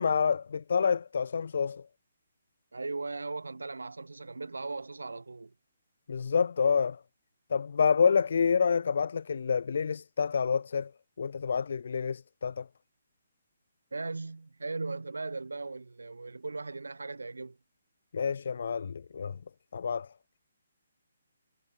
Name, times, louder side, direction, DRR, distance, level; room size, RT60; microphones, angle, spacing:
voice 1, 0.0-1.9 6.1-7.0 7.5-10.9 11.2-12.7 18.1-19.4 19.7-20.1, left 6 dB, 55° left, 0.9 m, -28 dB
voice 2, 2.7-5.5 13.9-17.6, right 3 dB, 70° right, 4.5 m, -38 dB
figure-of-eight pair, 135°, 0 cm